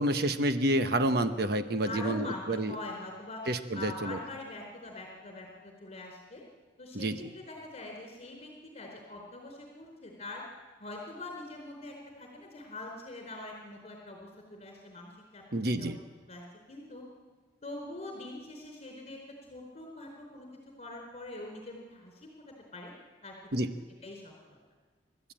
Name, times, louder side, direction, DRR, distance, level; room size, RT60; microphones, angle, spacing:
voice 1, 0.0-2.7 3.5-4.2 6.9-7.3 15.5-16.0 23.5-23.7, right 1 dB, 60° right, 8 dB, 1.1 m, -29 dB
voice 2, 1.8-3.5 3.7-6.4 6.8-10.4 10.8-16.0 16.3-17.0 17.6-19.2 19.5-20.5 20.8-22.9 23.2-23.3 23.6-23.7 24.0-24.6, left 2 dB, 40° left, 1 dB, 4.3 m, -43 dB
29.5 x 13.5 x 8.9 m, 1.4 s
head